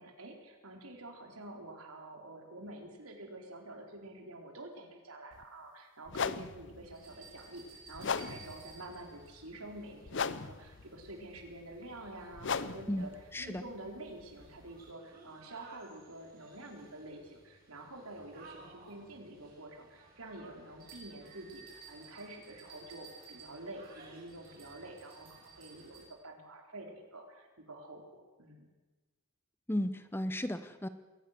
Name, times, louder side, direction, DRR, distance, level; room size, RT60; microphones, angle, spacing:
voice 1, 0.0-13.1 13.4-28.7, right 1 dB, 75° right, 2 dB, 4.3 m, -48 dB
sound 1, 5.3-5.4 6.1-14.9, left 5 dB, 55° left, 0.7 m, -40 dB
sound 2, 6.9-26.1, right 4 dB, 45° right, 6.2 m, -57 dB
voice 2, 12.9-13.6 29.7-30.9, left 1 dB, 10° left, 12 dB, 0.7 m, -35 dB
21.5 x 18.0 x 6.7 m, 1.3 s
head